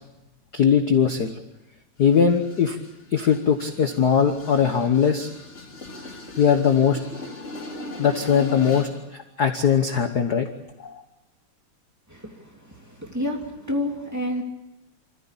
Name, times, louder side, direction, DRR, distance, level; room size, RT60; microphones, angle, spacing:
voice 1, 0.5-1.3 2.0-2.8 3.1-5.3 6.4-7.0 8.0-10.5 10.8-11.0, left 7 dB, 60° left, 6 dB, 1.1 m, -20 dB
sound 1, 2.0-9.0, left 2 dB, 25° left, 2.9 m, -39 dB
voice 2, 12.1-14.4, left 1 dB, 5° right, 1 dB, 2.5 m, -30 dB
26.0 x 14.5 x 8.6 m, 1.0 s
omnidirectional pair, 3.3 m